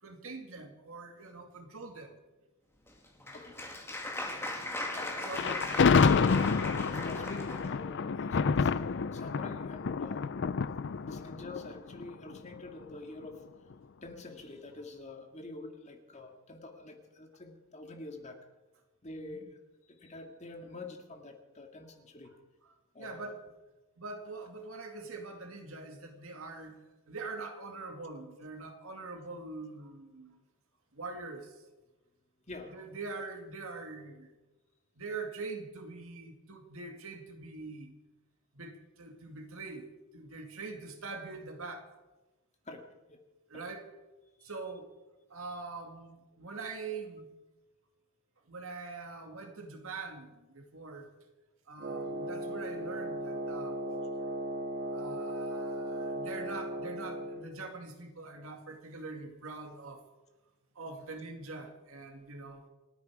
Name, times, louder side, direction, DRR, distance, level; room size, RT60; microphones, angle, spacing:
voice 1, 0.0-2.1 5.2-5.4 6.3-6.5 19.2-19.4 22.6-23.4 24.0-30.4 30.9-31.6 32.7-34.3 35.0-37.9 38.5-41.9 43.5-43.9 44.4-44.9 45.3-47.3 48.5-51.1 51.7-53.9 54.9-60.0 60.8-62.7, right 3 dB, 65° right, 4 dB, 2.3 m, -43 dB
Applause, 2.9-7.7, left 1 dB, 10° left, 2.2 m, -38 dB
voice 2, 4.9-5.6 6.9-10.3 11.0-13.4 14.0-18.4 19.0-22.3 22.9-23.3 32.5-32.7 42.7-42.8 43.1-43.2 43.5-43.6 44.4-44.5 53.8-54.0, left 2 dB, 30° left, 4 dB, 2.0 m, -47 dB
Thunder, 5.3-12.5, left 5 dB, 50° left, 0.4 m, -28 dB
Wind instrument woodwind instrument, 51.8-57.5, right 1 dB, 45° right, 1.8 m, -37 dB
28.5 x 9.5 x 4.8 m, 1.1 s
head